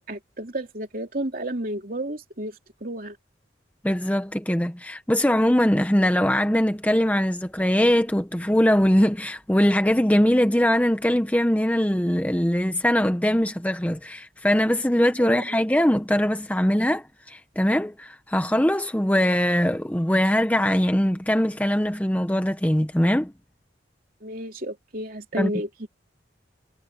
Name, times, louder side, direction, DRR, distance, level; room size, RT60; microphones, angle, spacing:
voice 1, 0.1-3.2 15.2-15.6 24.2-25.9, right 1 dB, 50° right, 3.3 m, -32 dB
voice 2, 3.8-23.3 25.4-25.5, equal, 10° left, 0.9 m, -21 dB
head